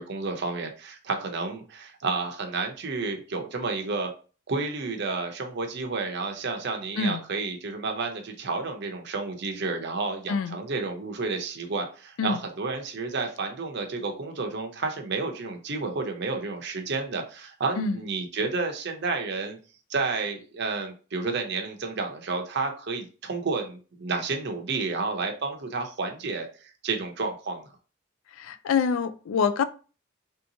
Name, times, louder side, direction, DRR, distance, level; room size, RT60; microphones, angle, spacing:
voice 1, 0.0-4.1 4.5-19.6 19.9-27.7, right 3 dB, 55° right, 0.6 m, -31 dB
voice 2, 28.4-29.6, left 5 dB, 85° left, 0.3 m, -25 dB
3.4 x 2.8 x 2.7 m
head